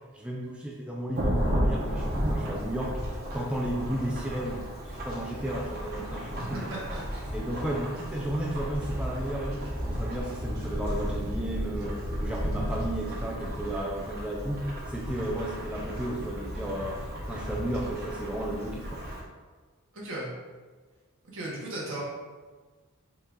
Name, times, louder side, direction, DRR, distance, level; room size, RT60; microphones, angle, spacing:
voice 1, 0.1-4.7 4.9-6.8 7.3-19.0, right 1 dB, 5° right, -3 dB, 0.4 m, -34 dB
Thunderstorm / Rain, 1.2-19.2, equal, 45° right, 1.0 m, -33 dB
voice 2, 6.4-7.3 19.9-20.3 21.3-22.0, right 1 dB, 65° right, -5 dB, 1.3 m, -36 dB
5.4 x 2.4 x 3.7 m, 1.4 s
head